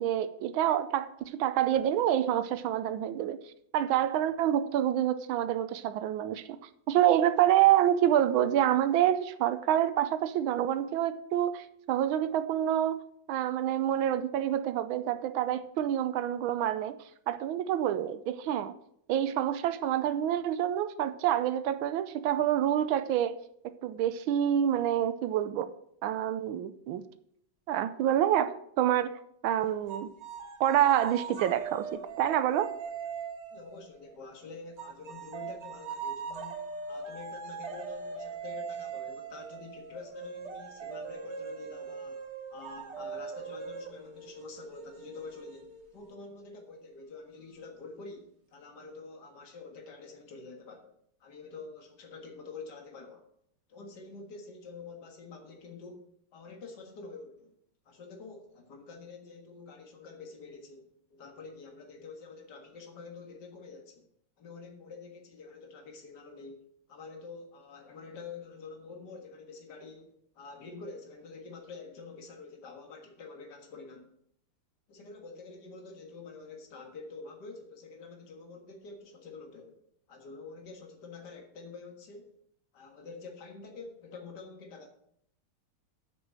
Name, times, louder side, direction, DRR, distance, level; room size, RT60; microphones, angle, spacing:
voice 1, 0.0-3.4 3.7-6.6 6.9-13.0 13.3-16.9 17.3-18.7 19.1-23.4 23.8-25.7 26.0-27.0 27.7-30.1 30.6-32.7, right 11 dB, 90° right, 12 dB, 1.4 m, -27 dB
sound 1, 29.9-34.2 34.8-46.1, right 6 dB, 45° right, 1.0 m, -41 dB
voice 2, 33.5-36.6 36.9-42.2 42.5-50.9 51.2-53.2 53.7-57.5 57.9-64.1 64.4-74.1 74.9-79.8 80.1-82.4 82.7-84.9, left 4 dB, 55° left, 3 dB, 2.2 m, -47 dB
7.9 x 6.2 x 7.5 m, 0.70 s
omnidirectional pair, 2.2 m